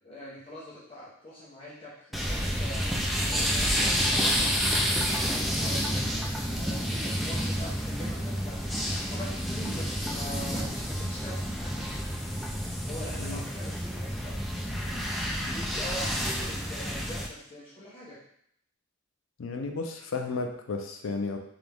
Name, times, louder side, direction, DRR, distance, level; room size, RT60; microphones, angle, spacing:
voice 1, 0.0-2.9 3.2-4.8 5.1-6.2 6.5-8.8 9.1-11.9 12.8-14.5 14.8-15.2 15.5-18.2, equal, 30° left, -10 dB, 1.2 m, -43 dB
sound 1, 2.1-17.3, equal, ahead, 0.4 m, -29 dB
voice 2, 19.4-21.4, left 3 dB, 70° left, 4 dB, 0.5 m, -33 dB
3.7 x 3.0 x 3.5 m, 0.69 s
head